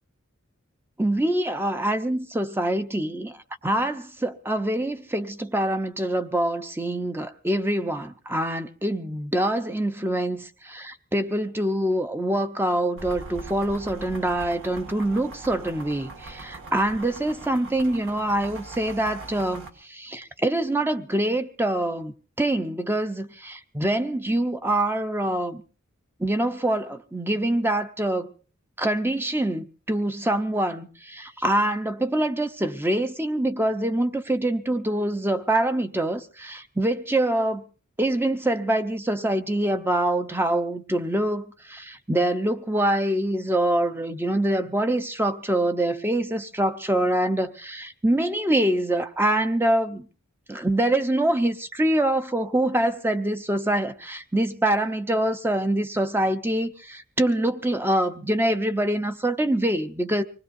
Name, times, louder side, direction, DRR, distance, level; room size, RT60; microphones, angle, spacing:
voice 1, 1.0-3.4 3.6-25.6 26.2-28.3 28.8-37.6 38.0-50.1 50.5-60.2, right 1 dB, 10° right, 0.8 m, -25 dB
sound 1, 13.0-19.7, right 2 dB, 65° right, 2.2 m, -41 dB
25.0 x 19.5 x 2.6 m
head